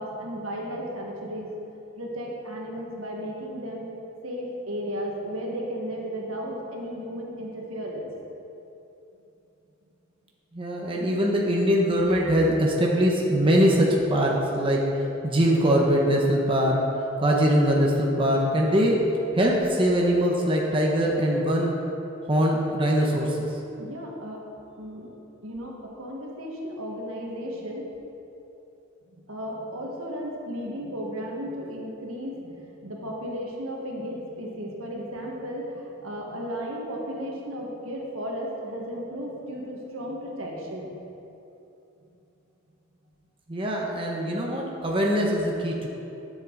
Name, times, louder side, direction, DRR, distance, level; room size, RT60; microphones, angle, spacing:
voice 1, 0.0-1.5 2.0-3.9 4.2-8.1 23.8-24.4 24.8-25.1 25.4-27.9 29.3-41.0, equal, 75° right, -2 dB, 1.6 m, -34 dB
voice 2, 10.5-14.9 15.2-16.9 17.2-19.0 19.3-21.7 22.3-23.5 43.5-45.9, equal, 25° right, -2 dB, 0.9 m, -22 dB
11.5 x 7.4 x 4.0 m, 2.9 s
head